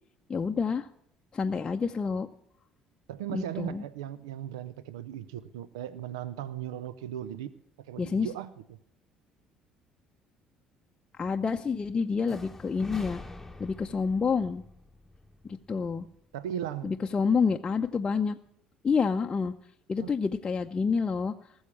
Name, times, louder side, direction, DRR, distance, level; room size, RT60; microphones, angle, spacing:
voice 1, 0.3-0.9 1.3-2.3 3.3-3.8 8.0-8.3 11.2-13.2 13.6-14.6 15.4-16.0 16.8-18.4 18.8-19.5 19.9-21.3, left 5 dB, 30° left, 4 dB, 0.6 m, -28 dB
voice 2, 3.1-8.8 16.3-17.0 20.0-20.1, right 11 dB, 75° right, 17 dB, 0.5 m, -37 dB
sound 1, 12.3-16.2, left 1 dB, 5° left, 1.2 m, -46 dB
19.0 x 7.2 x 7.3 m, 0.75 s
figure-of-eight pair, 55°, 3 cm